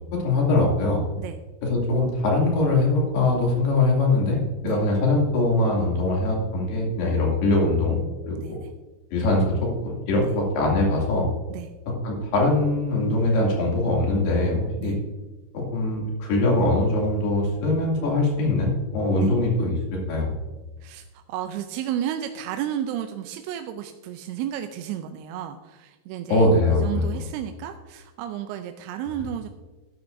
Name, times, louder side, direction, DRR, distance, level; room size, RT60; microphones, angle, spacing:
voice 1, 0.1-1.0 1.6-8.4 9.1-11.3 12.0-14.9 15.5-19.7 20.1-20.4 26.3-27.0, left 2 dB, 80° left, -2 dB, 4.6 m, -22 dB
voice 2, 8.4-8.7 10.1-10.4 11.5-11.7 14.8-15.0 19.2-19.4 20.8-29.5, right 10 dB, 85° right, 7 dB, 2.6 m, -33 dB
13.0 x 10.5 x 2.6 m, 1.2 s
omnidirectional pair, 4.5 m